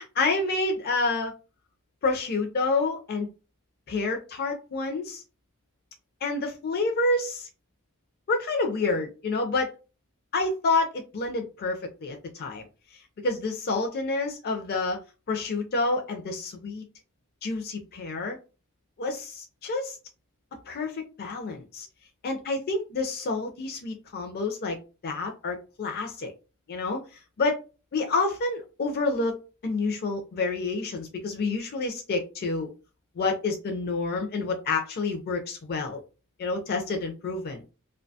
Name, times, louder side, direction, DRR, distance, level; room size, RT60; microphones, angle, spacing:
voice 1, 0.0-1.3 2.0-3.3 3.9-5.2 6.2-7.5 8.3-9.7 10.3-12.6 13.2-15.0 15.3-16.8 17.4-18.4 19.0-20.0 20.7-21.9 22.2-24.8 25.0-26.3 26.7-27.0 27.4-27.6 27.9-29.4 29.6-32.7 33.2-36.0 36.4-37.6, left 3 dB, 45° left, 3 dB, 0.4 m, -28 dB
2.6 x 2.2 x 2.6 m, 0.32 s
head